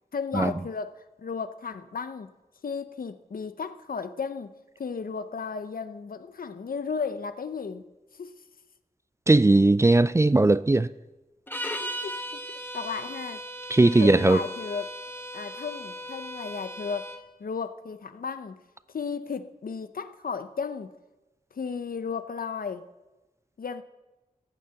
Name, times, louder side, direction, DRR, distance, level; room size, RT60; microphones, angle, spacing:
voice 1, 0.1-2.3 2.6-4.5 4.8-7.9 8.2-8.4 11.8-12.4 12.7-13.4 14.0-14.9 15.3-17.1 17.4-18.6 18.9-20.9 21.5-22.9 23.6-23.8, left 5 dB, 75° left, 0.7 m, -34 dB
voice 2, 9.3-10.9 13.7-14.4, right 2 dB, 20° right, 0.3 m, -19 dB
sound 1, 11.5-17.2, equal, 15° left, 1.1 m, -37 dB
14.5 x 6.6 x 7.7 m
wide cardioid pair, 80°, 15 cm